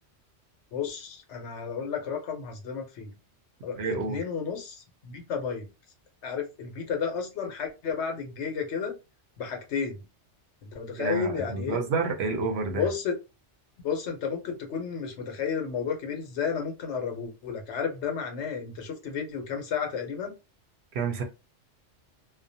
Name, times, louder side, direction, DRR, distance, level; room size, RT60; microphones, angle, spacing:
voice 1, 0.7-3.1 3.6-5.7 6.2-8.9 9.4-10.0 10.7-11.8 12.7-13.1 13.8-20.3, left 6 dB, 70° left, 0.9 m, -32 dB
voice 2, 3.8-4.2 11.0-12.9 20.9-21.2, right 4 dB, 65° right, 0.8 m, -29 dB
2.4 x 2.1 x 2.6 m
omnidirectional pair, 1.2 m